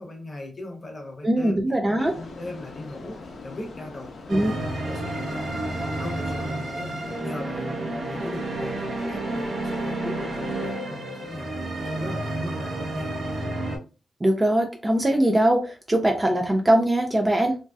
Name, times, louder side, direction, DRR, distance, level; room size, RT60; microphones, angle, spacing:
voice 1, 0.0-1.6 2.0-5.7 6.0-11.5 11.8-13.2, left 2 dB, 25° left, 0.7 m, -39 dB
voice 2, 1.2-2.1 4.3-4.5 14.2-17.6, right 1 dB, 15° right, 0.3 m, -21 dB
sound 1, 2.0-10.7, left 3 dB, 65° left, 0.6 m, -41 dB
sound 2, 4.3-13.8, right 2 dB, 75° right, 0.8 m, -30 dB
3.0 x 2.6 x 2.2 m
wide cardioid pair, 180°, 0 cm